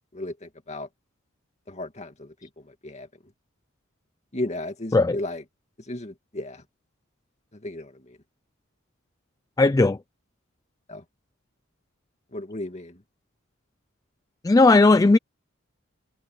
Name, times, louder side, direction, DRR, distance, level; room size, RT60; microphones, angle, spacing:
voice 1, 0.1-0.9 1.7-3.1 4.3-5.4 5.8-6.6 7.5-8.2 10.9-11.0 12.3-13.0, left 1 dB, 30° left, 2.2 m, -35 dB
voice 2, 9.6-10.0 14.4-15.2, left 3 dB, 15° left, 0.3 m, -16 dB
head